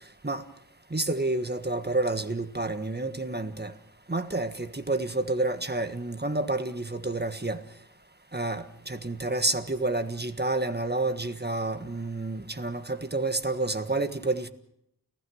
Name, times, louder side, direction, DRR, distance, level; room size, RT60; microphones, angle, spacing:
voice 1, 0.9-3.7 4.1-7.6 8.3-14.5, right 2 dB, 25° right, 1.5 m, -29 dB
30.0 x 16.0 x 6.4 m
wide cardioid pair, 55°, 40 cm